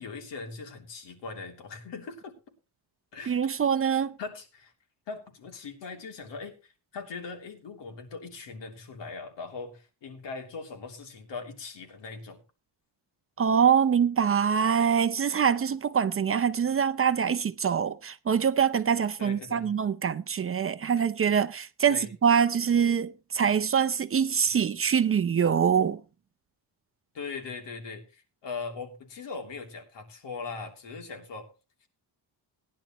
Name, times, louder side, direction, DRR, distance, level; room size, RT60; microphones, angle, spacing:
voice 1, 0.0-2.3 3.1-3.4 4.2-4.7 5.1-12.4 19.2-19.7 21.9-22.1 27.1-31.5 31.8-31.9, left 4 dB, 80° left, 3.2 m, -40 dB
voice 2, 3.3-4.2 13.4-26.0, right 7 dB, 30° right, 0.5 m, -24 dB
19.0 x 10.5 x 3.0 m
cardioid pair, 145°, 43 cm